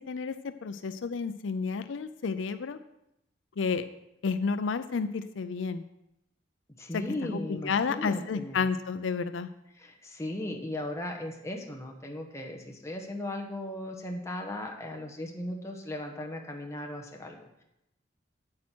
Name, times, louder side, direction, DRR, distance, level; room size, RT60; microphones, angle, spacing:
voice 1, 0.1-2.8 3.6-3.9 4.2-5.8 6.9-7.0 7.3-9.5, left 5 dB, 80° left, 11 dB, 0.4 m, -31 dB
voice 2, 6.8-8.7 9.7-17.6, left 1 dB, 15° left, 1 dB, 1.2 m, -37 dB
8.8 x 8.5 x 4.4 m, 0.84 s
head